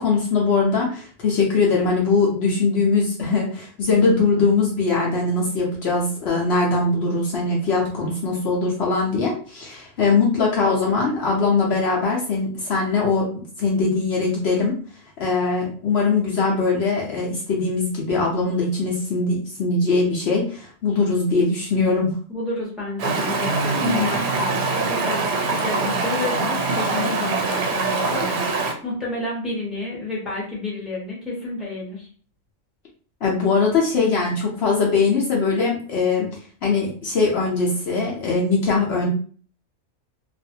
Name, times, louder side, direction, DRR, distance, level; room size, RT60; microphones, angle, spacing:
voice 1, 0.0-14.8 15.2-22.1 33.2-36.3 36.6-39.1, left 4 dB, 60° left, -3 dB, 0.9 m, -21 dB
voice 2, 22.3-32.1, left 3 dB, ahead, -4 dB, 0.8 m, -30 dB
Stream, 23.0-28.7, right 3 dB, 65° right, 0.8 m, -23 dB
2.5 x 2.4 x 2.7 m, 0.43 s
omnidirectional pair, 1.3 m